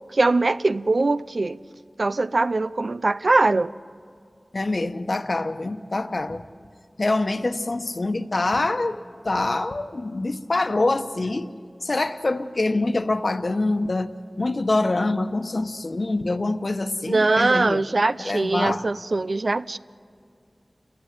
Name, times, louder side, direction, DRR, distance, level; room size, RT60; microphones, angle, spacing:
voice 1, 0.1-1.6 2.0-3.7 17.1-19.8, right 3 dB, 70° right, 0.6 m, -22 dB
voice 2, 4.5-6.4 7.0-9.0 9.2-11.5 11.8-17.8 18.2-18.9, left 2 dB, 60° left, 1.1 m, -25 dB
29.5 x 15.5 x 9.6 m
wide cardioid pair, 40°, 0 cm